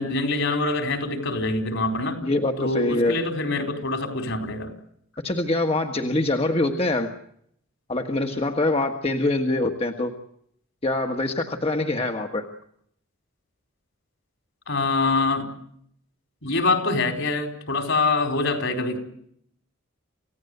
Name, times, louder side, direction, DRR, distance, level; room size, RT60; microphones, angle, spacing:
voice 1, 0.0-2.2 2.6-4.7 14.7-15.5 16.4-19.0, left 3 dB, 65° left, 6 dB, 4.6 m, -24 dB
voice 2, 2.2-3.2 5.2-7.1 7.9-10.1 10.8-12.5, left 2 dB, 30° left, 4 dB, 1.6 m, -24 dB
28.5 x 16.5 x 8.1 m, 0.69 s
head